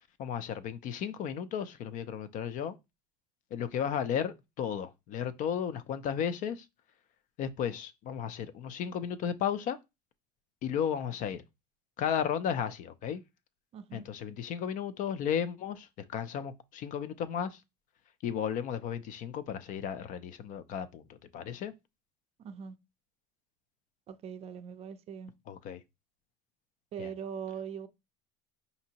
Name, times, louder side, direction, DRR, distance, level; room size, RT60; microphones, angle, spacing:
voice 1, 0.2-2.7 3.5-6.6 7.4-9.8 10.6-11.4 12.0-13.2 13.9-17.6 18.2-21.7 25.5-25.8 27.0-27.1, left 8 dB, 45° left, 0.4 m, -34 dB
voice 2, 13.7-14.1 22.4-22.7 24.1-25.3 26.9-27.9, right 7 dB, 35° right, 0.5 m, -41 dB
5.0 x 2.7 x 2.8 m
cardioid pair, 140°, 19 cm